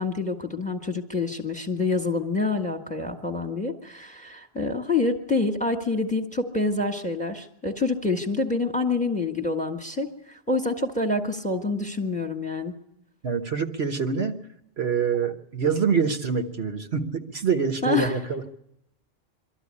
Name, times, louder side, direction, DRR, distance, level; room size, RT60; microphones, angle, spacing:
voice 1, 0.0-12.7 17.8-18.1, left 3 dB, 5° left, 5 dB, 1.6 m, -27 dB
voice 2, 13.2-14.4 14.8-18.4, right 6 dB, 60° right, 5 dB, 1.4 m, -25 dB
24.0 x 13.0 x 9.7 m, 0.85 s
omnidirectional pair, 1.3 m